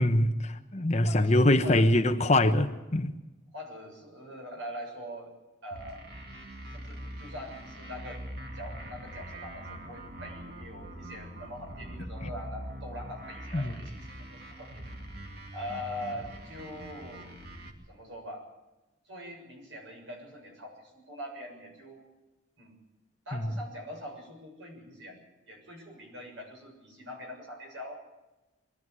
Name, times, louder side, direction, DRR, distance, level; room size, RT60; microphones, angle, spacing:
voice 1, 0.0-3.1 12.2-12.3 13.5-13.8 23.3-23.5, left 1 dB, 35° left, 1.1 m, -24 dB
voice 2, 0.7-1.9 3.5-5.3 5.6-6.0 6.7-8.2 8.5-14.9 15.5-17.4 17.9-18.5 19.1-22.0 22.6-22.8 23.3-25.2 25.5-28.0, equal, 75° right, 7.0 m, -43 dB
sound 1, 5.7-17.7, right 1 dB, 50° right, 2.5 m, -43 dB
23.0 x 12.5 x 9.7 m
head